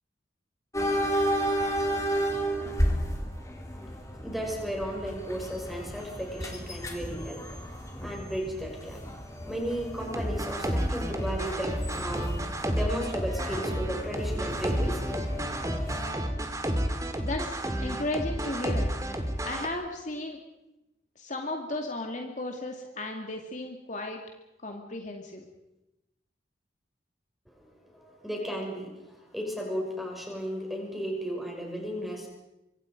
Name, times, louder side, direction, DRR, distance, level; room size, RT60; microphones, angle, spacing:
sound 1, 0.7-16.1, equal, 20° left, 3.3 m, -33 dB
voice 1, 4.1-15.1 27.5-32.3, equal, ahead, 0 dB, 6.2 m, -35 dB
sound 2, 10.0-19.7, right 1 dB, 20° right, 2.2 m, -31 dB
voice 2, 17.2-18.9 19.4-20.4 21.2-24.2 24.6-25.4, left 2 dB, 45° left, 2 dB, 2.3 m, -35 dB
26.0 x 24.0 x 5.2 m, 0.94 s
head